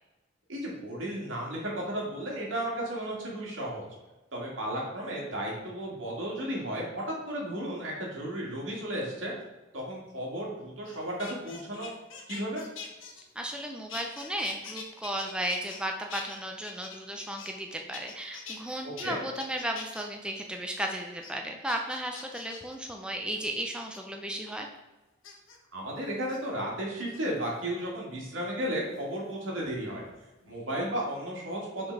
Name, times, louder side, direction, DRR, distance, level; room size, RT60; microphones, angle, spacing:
voice 1, 0.5-3.9 4.3-9.3 9.7-11.9 12.3-12.6 18.8-19.2 25.7-30.0 30.5-31.9, right 1 dB, 75° right, -3 dB, 2.2 m, -34 dB
sound 1, 10.9-13.6 13.9-15.8 16.1-17.6 17.9-18.6 19.0-19.1 19.4-20.1 20.5-20.8 21.2-21.3 21.7-22.7 23.6-24.0 25.2-25.6 26.2-26.4 27.0-27.5 29.0-30.2 30.4-30.8, left 5 dB, 85° left, 1.0 m, -44 dB
voice 2, 13.4-24.7, right 1 dB, 5° right, 2 dB, 0.5 m, -35 dB
6.2 x 3.9 x 4.7 m, 1.1 s
head